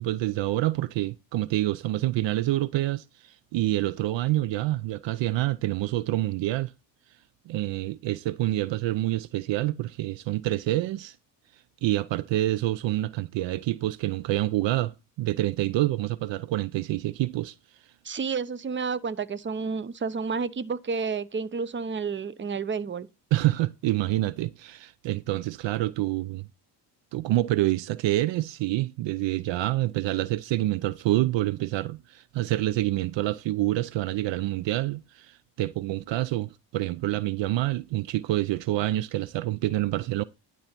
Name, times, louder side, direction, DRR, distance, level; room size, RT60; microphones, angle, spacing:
voice 1, 0.0-6.7 7.5-11.1 11.8-17.5 23.3-26.5 27.1-40.2, right 16 dB, 65° right, 0.6 m, -27 dB
voice 2, 18.0-23.1, right 5 dB, 25° right, 0.8 m, -30 dB
11.5 x 4.2 x 5.9 m
supercardioid pair, 65°, 49 cm